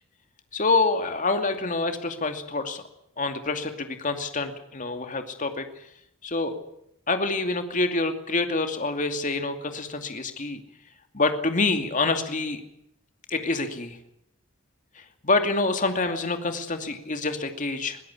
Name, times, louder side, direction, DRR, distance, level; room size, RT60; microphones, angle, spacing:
voice 1, 0.5-2.8 3.2-5.6 6.2-6.6 7.1-10.6 11.1-12.6 13.3-14.0 15.0-18.0, left 3 dB, 40° left, 6 dB, 2.5 m, -26 dB
22.5 x 17.5 x 8.7 m, 0.75 s
head